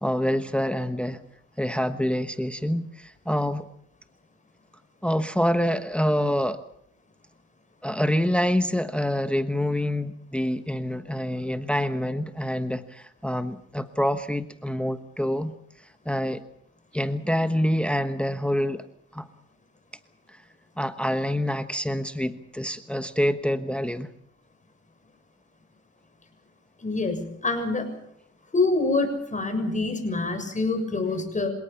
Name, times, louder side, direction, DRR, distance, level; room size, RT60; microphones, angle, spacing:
voice 1, 0.0-1.2 1.6-3.7 5.0-6.6 7.8-15.5 16.0-16.4 16.9-18.9 19.1-19.3 20.3-20.4 20.8-24.1, equal, 5° left, 10 dB, 1.2 m, -26 dB
voice 2, 26.8-27.9 28.5-31.5, left 3 dB, 25° left, 6 dB, 6.7 m, -26 dB
26.5 x 18.5 x 7.1 m, 0.70 s
cardioid pair, 90°, 30 cm